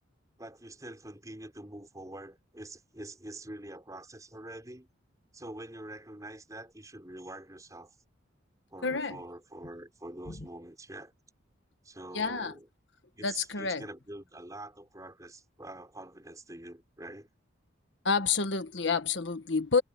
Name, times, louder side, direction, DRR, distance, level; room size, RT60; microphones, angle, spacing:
voice 1, 0.4-4.9 5.3-8.0 8.7-11.1 11.8-12.7 13.1-17.3, right 1 dB, 15° right, 5.7 m, -45 dB
voice 2, 8.8-9.2 12.1-12.5 13.2-13.9 18.0-19.8, left 5 dB, 65° left, 1.4 m, -29 dB
head